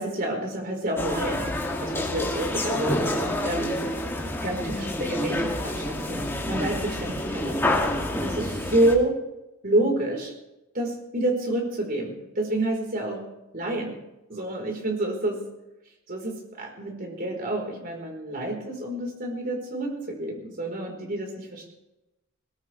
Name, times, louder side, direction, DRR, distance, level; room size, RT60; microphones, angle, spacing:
voice 1, 0.0-1.5 1.8-3.8 4.1-7.8 8.1-9.2 9.6-10.3 10.7-13.3 13.5-14.0 14.3-15.4 16.1-21.7, right 1 dB, 45° right, 1 dB, 4.6 m, -28 dB
sound 1, 1.0-8.9, left 1 dB, 10° left, 2.5 m, -28 dB
21.5 x 19.0 x 3.5 m, 0.95 s
head